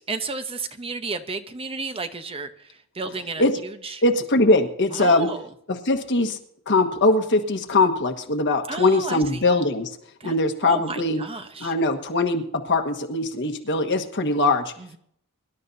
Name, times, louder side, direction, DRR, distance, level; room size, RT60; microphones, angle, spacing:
voice 1, 0.1-2.5 2.9-3.4 3.9-4.0 5.0-5.5 8.7-9.4 10.2-10.3 10.6-11.7 14.8-15.0, right 3 dB, 25° right, 8 dB, 0.9 m, -32 dB
voice 2, 4.0-5.3 5.7-6.4 6.7-10.0 10.2-11.2 11.6-14.7, left 2 dB, 55° left, 6 dB, 1.4 m, -21 dB
24.0 x 12.0 x 2.7 m, 0.67 s
head